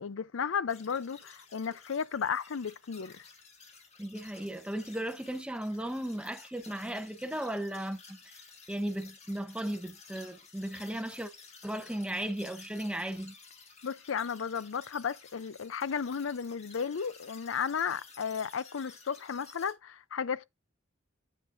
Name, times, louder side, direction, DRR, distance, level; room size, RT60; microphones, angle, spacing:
voice 1, 0.0-3.2 13.8-20.4, left 6 dB, 75° left, 0.5 m, -34 dB
sound 1, 0.7-19.7, left 4 dB, 35° left, 1.8 m, -54 dB
voice 2, 4.0-8.4 8.7-11.3 11.6-13.4, right 1 dB, 5° right, 0.8 m, -36 dB
8.5 x 7.2 x 2.5 m
head